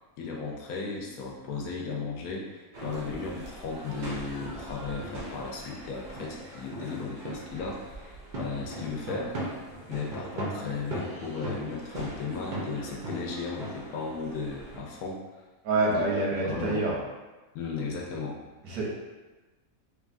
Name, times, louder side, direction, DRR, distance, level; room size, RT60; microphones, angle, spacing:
voice 1, 0.2-8.1 8.4-9.4 9.9-15.2 15.9-16.0 16.4-16.8 17.5-18.4, left 4 dB, 80° left, -1 dB, 1.1 m, -35 dB
sound 1, 2.7-14.8, right 1 dB, 60° right, 0.5 m, -39 dB
voice 2, 15.6-17.0 18.6-18.8, right 2 dB, 90° right, -4 dB, 1.3 m, -26 dB
3.3 x 2.3 x 2.5 m, 1.2 s
omnidirectional pair, 1.6 m